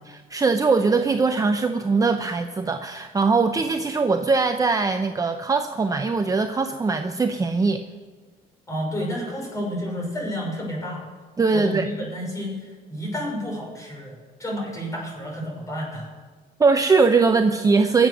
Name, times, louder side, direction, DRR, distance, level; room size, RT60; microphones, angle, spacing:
voice 1, 0.3-7.8 11.4-11.9 16.6-18.1, right 4 dB, 20° right, 6 dB, 0.7 m, -21 dB
voice 2, 8.7-11.0 11.5-16.1, equal, 20° left, -1 dB, 5.9 m, -30 dB
21.5 x 7.8 x 6.3 m, 1.4 s
cardioid pair, 110°, 17 cm